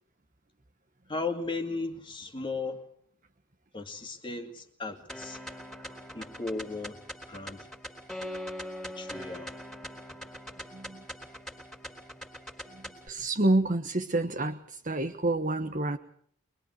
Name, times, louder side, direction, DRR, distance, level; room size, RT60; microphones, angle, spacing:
voice 1, 1.1-2.8 3.7-5.4 6.1-7.0 7.3-7.7 8.8-9.5, left 3 dB, 25° left, 2.4 m, -36 dB
sound 1, 5.1-13.1, equal, 5° left, 3.6 m, -42 dB
voice 2, 13.1-16.0, right 2 dB, 40° right, 1.2 m, -28 dB
24.5 x 21.5 x 6.6 m
head